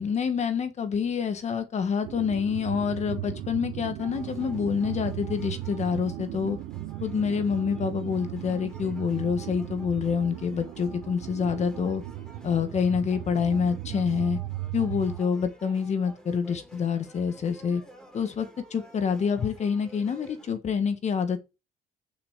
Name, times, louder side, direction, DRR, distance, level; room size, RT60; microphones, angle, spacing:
voice 1, 0.0-6.6 7.0-12.0 12.4-14.4 14.7-17.8 18.1-21.4, left 6 dB, 40° left, 1.5 m, -27 dB
sound 1, 2.0-15.2, right 14 dB, 80° right, 0.8 m, -37 dB
sound 2, 4.0-20.5, right 2 dB, 5° left, 3.6 m, -51 dB
8.9 x 7.0 x 4.6 m
cardioid pair, 110°, 17 cm